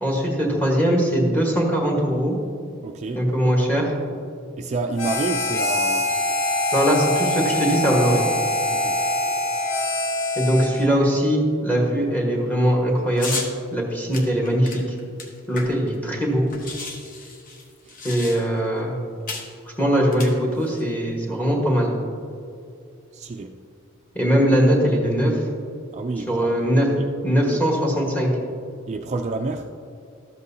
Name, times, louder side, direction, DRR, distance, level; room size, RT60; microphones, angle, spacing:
voice 1, 0.0-2.4 3.1-3.9 6.7-8.2 10.4-13.4 13.7-15.0 15.5-16.5 18.0-18.9 19.8-21.9 24.1-25.4 26.3-26.9 27.2-28.3, equal, 10° left, -1 dB, 1.4 m, -21 dB
voice 2, 2.8-3.3 4.6-6.2 8.7-9.0 17.8-18.0 23.1-23.6 25.9-26.6 27.0-27.1 27.5-27.6 28.9-29.7, right 3 dB, 35° right, 4 dB, 0.3 m, -29 dB
Harmonica, 5.0-11.0, left 2 dB, 90° left, 1.2 m, -24 dB
sound 1, 13.2-13.5 14.1-16.2 16.5-18.7 19.3-19.5 20.1-20.8, left 3 dB, 45° left, 1.0 m, -34 dB
12.5 x 7.9 x 2.7 m, 2.3 s
head